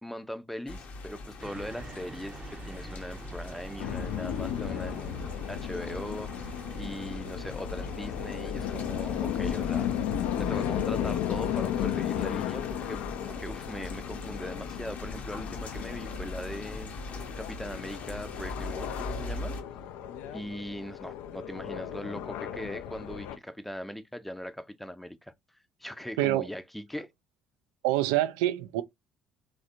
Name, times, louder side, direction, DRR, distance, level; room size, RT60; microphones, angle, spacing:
voice 1, 0.0-9.9 10.4-19.6 20.3-25.3 25.8-27.1, equal, 5° left, 0.5 m, -40 dB
sound 1, 0.7-19.6, left 2 dB, 50° left, 0.8 m, -41 dB
sound 2, 1.4-9.9, right 3 dB, 35° right, 0.7 m, -48 dB
sound 3, 3.8-23.4, left 10 dB, 65° left, 0.4 m, -35 dB
voice 2, 26.2-26.5 27.8-28.8, right 15 dB, 70° right, 0.3 m, -26 dB
3.2 x 2.5 x 2.6 m
figure-of-eight pair, 50°, 3 cm